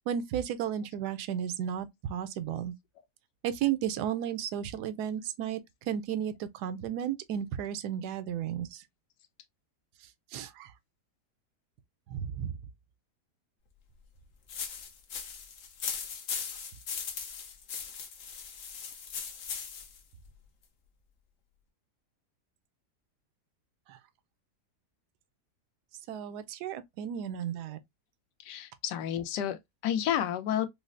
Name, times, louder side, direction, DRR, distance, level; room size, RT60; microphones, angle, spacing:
voice 1, 0.1-2.7 3.4-5.6 5.9-8.8 10.3-10.7 12.1-12.6 23.9-24.0 26.1-27.8, right 9 dB, 75° right, 1.1 m, -33 dB
sound 1, 14.5-20.0, left 6 dB, 60° left, 1.0 m, -39 dB
voice 2, 28.4-30.7, left 10 dB, 80° left, 1.2 m, -31 dB
5.1 x 2.0 x 2.4 m
omnidirectional pair, 1.8 m